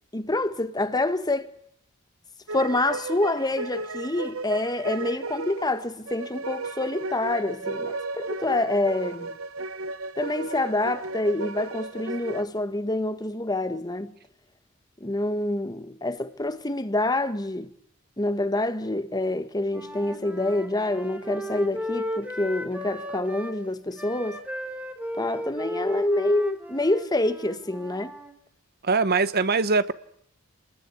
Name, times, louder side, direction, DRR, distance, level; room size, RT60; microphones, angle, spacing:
voice 1, 0.1-1.5 2.5-9.4 10.2-14.1 15.0-17.7 18.2-24.4 25.2-28.1, left 2 dB, 20° left, 1.6 m, -27 dB
sound 1, 2.5-12.4, right 3 dB, 80° right, 1.2 m, -34 dB
Wind instrument woodwind instrument, 19.7-23.6 23.9-28.3, equal, 5° right, 3.7 m, -35 dB
voice 2, 28.8-29.9, right 4 dB, 50° right, 0.9 m, -22 dB
27.5 x 20.5 x 8.4 m
head